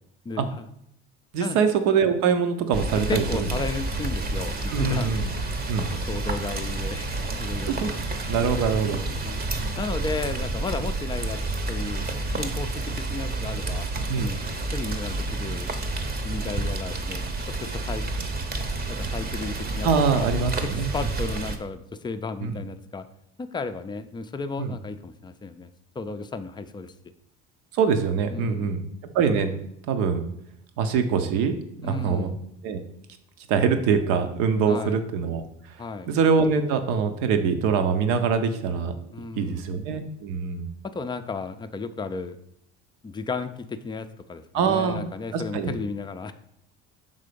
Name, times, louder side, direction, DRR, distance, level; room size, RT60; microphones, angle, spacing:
voice 1, 0.2-0.7 1.4-1.6 2.9-5.1 5.9-7.9 9.2-9.4 9.8-11.4 11.7-12.0 12.3-13.9 14.2-14.4 14.7-15.7 16.2-18.0 18.9-20.3 20.6-23.1 23.4-25.7 26.0-26.9 28.3-28.7 31.8-32.4 34.7-35.0 35.8-36.1 39.1-39.6 40.8-42.4 43.0-46.3, left 4 dB, 15° left, 9 dB, 0.4 m, -34 dB
voice 2, 1.3-3.5 4.7-5.3 5.7-5.9 7.6-8.0 8.3-9.0 9.5-9.8 14.1-14.3 19.8-20.9 22.4-22.6 24.6-24.7 27.7-28.8 29.1-29.5 29.9-30.2 30.8-32.3 32.6-32.8 33.5-35.4 36.1-38.9 39.4-40.7 44.5-45.0 45.3-45.7, right 6 dB, 70° right, 8 dB, 0.9 m, -24 dB
Rain, 2.7-21.6, right 2 dB, 25° right, 0.8 m, -30 dB
5.5 x 3.7 x 5.1 m, 0.74 s
hypercardioid pair, 80°, 35 cm